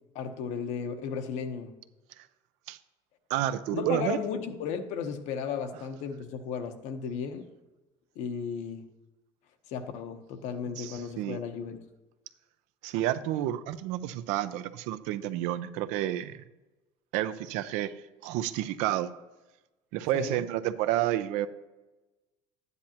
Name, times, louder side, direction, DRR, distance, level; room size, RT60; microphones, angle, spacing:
voice 1, 0.1-1.7 3.7-7.5 8.2-8.8 9.7-11.8 20.1-20.4, left 6 dB, 75° left, 7 dB, 1.0 m, -35 dB
voice 2, 3.3-4.2 10.8-11.4 12.8-16.4 17.1-17.9 18.2-19.1 19.9-21.5, right 13 dB, 85° right, 13 dB, 0.6 m, -30 dB
11.5 x 9.6 x 2.9 m, 1.1 s
cardioid pair, 115°, 12 cm